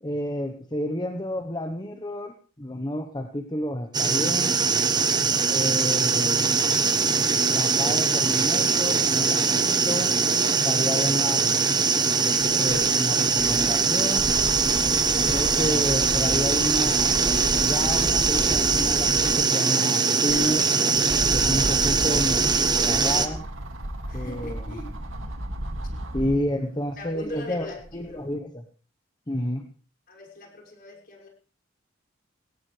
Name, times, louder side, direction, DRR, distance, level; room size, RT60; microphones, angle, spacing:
voice 1, 0.0-4.6 5.5-6.6 7.5-10.1 10.6-11.6 12.2-14.3 15.2-17.3 17.6-20.7 21.3-22.4 22.7-23.4 24.1-24.6 26.1-27.7 27.9-28.6 29.3-29.7, left 1 dB, 20° left, 6 dB, 1.1 m, -30 dB
sound 1, 3.9-23.3, right 5 dB, 20° right, 1.2 m, -22 dB
sound 2, 11.9-19.5 20.0-26.5 27.0-28.2, right 1 dB, 75° right, 2.4 m, -34 dB
voice 2, 24.1-25.0 27.0-28.2 30.1-31.3, left 2 dB, 50° left, 0 dB, 6.1 m, -42 dB
19.0 x 18.0 x 3.4 m, 0.39 s
head